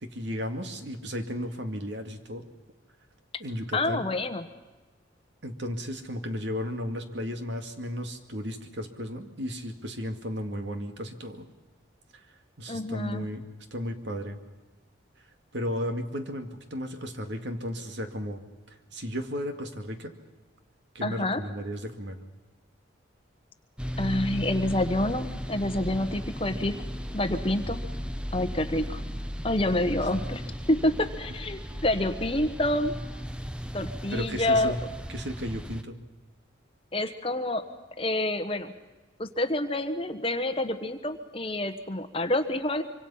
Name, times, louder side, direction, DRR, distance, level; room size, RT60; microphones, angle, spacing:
voice 1, 0.0-2.4 3.4-4.1 5.4-11.5 12.6-13.4 13.7-14.4 15.5-18.4 18.7-20.1 20.9-22.2 34.1-34.8 35.1-36.0, equal, 65° right, 6 dB, 2.3 m, -34 dB
voice 2, 3.7-4.5 12.7-13.3 21.0-21.4 24.0-26.7 27.1-27.8 28.3-29.0 29.4-30.4 30.7-32.9 33.7-34.7 36.9-37.6 38.0-38.7 39.2-42.8, left 1 dB, 30° left, 8 dB, 1.3 m, -27 dB
sound 1, 23.8-35.8, equal, 5° right, 0.8 m, -36 dB
25.5 x 25.5 x 5.7 m, 1.2 s
head